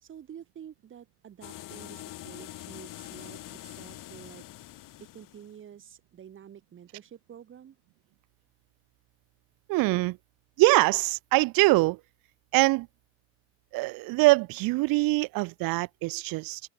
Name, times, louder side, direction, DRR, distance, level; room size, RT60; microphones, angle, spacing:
voice 1, 0.0-4.4 5.0-7.8, right 9 dB, 35° right, 1.1 m, -49 dB
sound 1, 1.4-5.5, left 15 dB, 60° left, 1.5 m, -44 dB
voice 2, 9.7-10.2 10.6-12.0 12.5-12.9 13.7-16.6, right 23 dB, 70° right, 0.5 m, -23 dB
open air
cardioid pair, 140°, 36 cm